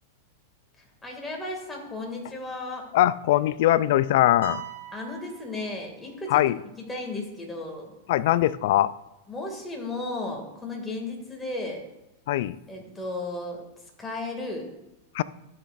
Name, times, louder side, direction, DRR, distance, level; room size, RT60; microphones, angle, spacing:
voice 1, 1.0-2.9 4.9-6.4 6.9-7.9 9.3-11.8 12.7-13.6 14.0-14.6, left 2 dB, 10° left, 0 dB, 2.2 m, -34 dB
voice 2, 2.9-4.6 6.3-6.6 8.1-8.9 12.3-12.6 15.2-15.3, left 14 dB, 65° left, 18 dB, 0.3 m, -21 dB
sound 1, 4.4-6.3, right 12 dB, 85° right, 1.0 m, -42 dB
12.5 x 6.0 x 2.5 m, 0.94 s
hypercardioid pair, 115°, 0 cm